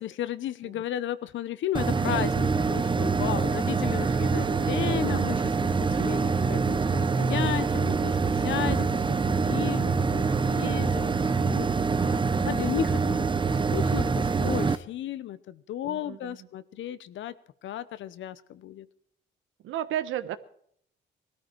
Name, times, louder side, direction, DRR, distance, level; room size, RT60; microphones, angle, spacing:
voice 1, 0.0-17.3 17.6-18.9, left 12 dB, 75° left, 16 dB, 0.9 m, -34 dB
sound 1, 1.7-14.8, right 4 dB, 25° right, 0.8 m, -25 dB
voice 2, 15.9-16.4 19.6-20.4, right 11 dB, 85° right, 13 dB, 1.1 m, -33 dB
18.5 x 13.5 x 4.6 m, 0.65 s
cardioid pair, 90°, 20 cm